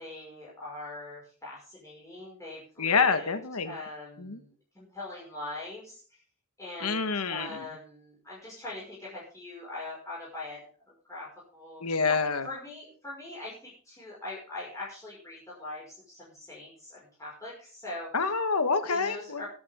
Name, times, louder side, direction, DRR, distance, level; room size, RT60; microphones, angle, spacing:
voice 1, 0.0-3.3 3.6-6.0 6.6-10.6 11.1-12.2 12.4-18.1 18.9-19.5, left 2 dB, 15° left, -6 dB, 5.6 m, -42 dB
voice 2, 2.8-3.8 4.2-4.4 6.8-7.6 11.8-12.5 18.1-19.4, left 4 dB, 90° left, 9 dB, 1.5 m, -27 dB
22.0 x 8.8 x 3.7 m, 0.43 s
head